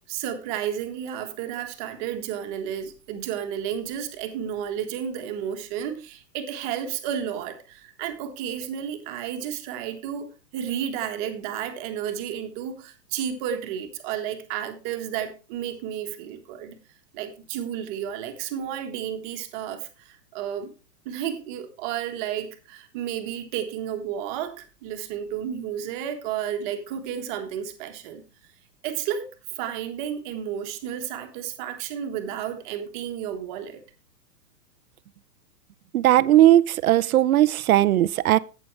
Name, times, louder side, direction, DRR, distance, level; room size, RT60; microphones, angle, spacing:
voice 1, 0.1-16.8 17.1-20.7 21.0-28.2 28.8-33.8, right 9 dB, 30° right, 1.4 m, -32 dB
voice 2, 35.9-38.4, right 13 dB, 60° right, 0.6 m, -18 dB
11.5 x 8.7 x 3.2 m
hypercardioid pair, 145°, 49 cm